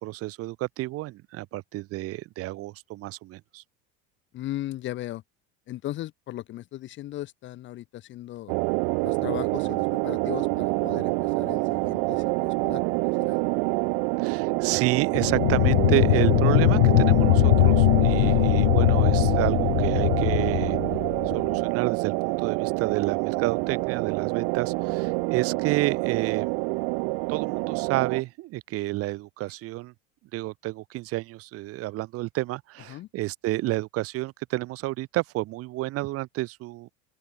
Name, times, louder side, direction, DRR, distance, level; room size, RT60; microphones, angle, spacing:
voice 1, 0.0-3.6 14.2-20.8 21.3-26.5 27.3-29.9 30.3-36.9, right 18 dB, 45° right, 4.9 m, -30 dB
voice 2, 4.3-5.2 5.7-8.5 9.0-13.4 18.1-18.4 25.1-25.2 32.9-33.1, left 14 dB, 35° left, 1.8 m, -37 dB
sound 1, 8.5-28.2, right 40 dB or more, 60° right, 1.3 m, -27 dB
sound 2, 15.1-21.6, left 25 dB, 85° left, 1.7 m, -21 dB
open air
cardioid pair, 170°, 33 cm